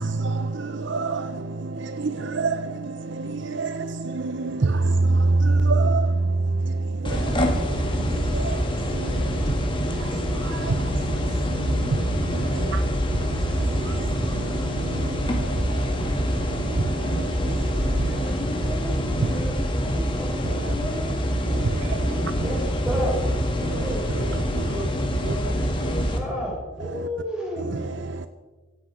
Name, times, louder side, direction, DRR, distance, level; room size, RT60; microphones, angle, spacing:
voice 1, 0.0-12.8 13.1-18.3 18.6-18.7 19.2-19.5 19.8-20.0 20.3-20.8 21.4-22.6 23.6-24.9 25.2-25.4 26.8-27.1 27.6-28.3, right 3 dB, 55° right, 0.6 m, -28 dB
sound 1, 7.1-26.2, equal, 25° left, 2.1 m, -25 dB
voice 2, 12.5-12.9 22.0-22.3 24.1-26.5, equal, 90° left, 6.5 m, -38 dB
voice 3, 18.1-21.2 22.4-23.2 23.7-24.2 25.5-25.7 26.1-27.7, equal, 5° right, 6.1 m, -33 dB
16.5 x 16.0 x 5.0 m
head